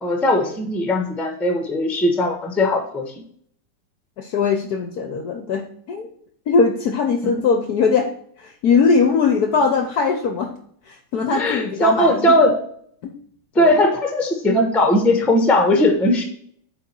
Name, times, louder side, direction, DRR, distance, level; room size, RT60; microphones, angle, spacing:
voice 1, 0.0-3.1 11.3-12.6 13.5-16.2, left 1 dB, ahead, 4 dB, 0.7 m, -18 dB
voice 2, 4.2-6.1 6.5-8.1 8.4-10.5 10.9-12.3 13.0-13.2 13.6-13.7, left 5 dB, 65° left, 6 dB, 1.0 m, -20 dB
8.5 x 3.8 x 4.4 m, 0.63 s
omnidirectional pair, 2.2 m